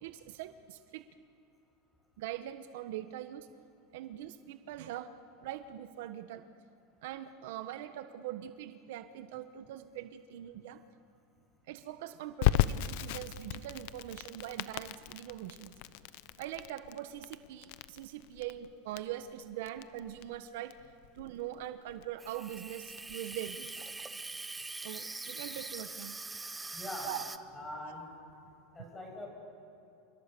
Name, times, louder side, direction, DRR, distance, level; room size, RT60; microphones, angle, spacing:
voice 1, 0.0-1.1 2.2-3.5 3.9-5.1 5.4-6.5 7.0-10.8 11.7-15.7 16.4-20.8 21.1-23.8 24.8-26.2 27.0-27.2 27.8-27.9, right 12 dB, 70° right, 10 dB, 1.2 m, -42 dB
Crackle, 12.4-23.1, left 14 dB, 60° left, 0.8 m, -36 dB
Water tap faucet / Sink (filling or washing), 22.2-27.4, right 3 dB, 10° right, 0.9 m, -43 dB
voice 2, 26.7-27.2 27.5-28.1 28.7-29.3, left 1 dB, 10° left, 0 dB, 7.8 m, -42 dB
29.0 x 29.0 x 6.9 m, 2.7 s
supercardioid pair, 150°, 0 cm